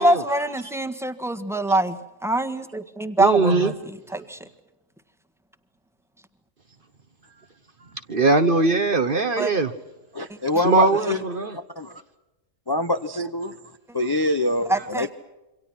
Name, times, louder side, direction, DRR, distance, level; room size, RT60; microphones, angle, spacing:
voice 1, 0.0-2.0 2.2-3.7 4.1-4.4 9.4-9.5 14.7-15.1, right 1 dB, ahead, 8 dB, 1.5 m, -23 dB
voice 2, 3.2-3.7 8.1-9.7 10.6-11.6, right 3 dB, 45° right, 9 dB, 1.3 m, -20 dB
voice 3, 10.1-11.4 11.8-11.9 12.7-13.5 13.9-15.1, left 2 dB, 20° left, 7 dB, 0.8 m, -24 dB
28.0 x 25.0 x 6.0 m, 1.0 s
omnidirectional pair, 1.3 m